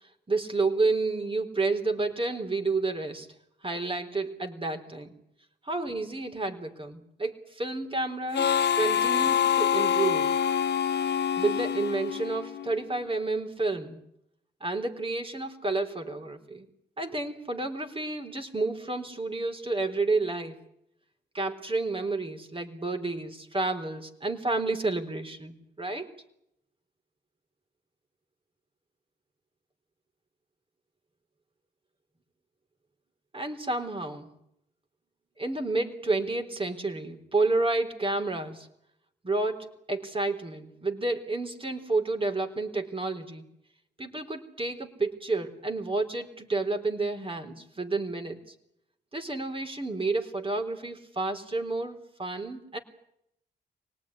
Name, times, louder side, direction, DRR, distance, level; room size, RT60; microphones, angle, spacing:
voice 1, 0.3-3.3 3.6-5.1 5.6-10.3 11.4-14.0 14.6-16.7 17.0-20.6 21.3-26.2 33.3-34.3 35.4-38.7 39.2-43.5 44.0-48.4 49.1-52.8, right 3 dB, 30° right, 6 dB, 4.0 m, -30 dB
Harmonica, 8.3-12.8, left 8 dB, 65° left, 1.0 m, -26 dB
25.0 x 19.0 x 9.9 m, 0.77 s
cardioid pair, 60°, 19 cm